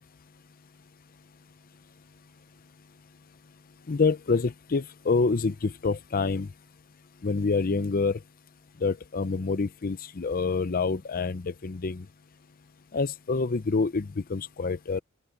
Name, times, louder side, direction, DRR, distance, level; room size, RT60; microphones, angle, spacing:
voice 1, 3.9-6.5 7.2-8.2 8.8-12.0 12.9-15.0, left 4 dB, 40° left, 0.6 m, -27 dB
open air
head